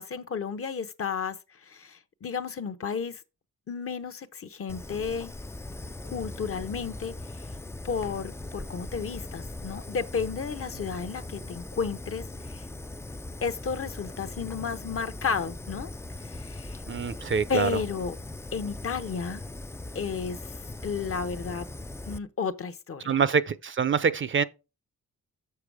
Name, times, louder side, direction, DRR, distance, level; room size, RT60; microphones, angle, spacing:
voice 1, 0.0-1.4 1.6-3.2 3.7-5.3 6.0-7.4 7.8-12.6 13.4-15.9 16.2-16.8 17.5-18.1 18.5-19.4 19.9-20.4 20.8-21.7 22.1-23.2, left 6 dB, 45° left, 0.9 m, -32 dB
Fire, 4.7-22.2, left 2 dB, 10° left, 0.3 m, -40 dB
voice 2, 16.9-17.8 23.0-24.4, right 6 dB, 40° right, 0.6 m, -25 dB
7.0 x 6.7 x 4.8 m
cardioid pair, 95°, 32 cm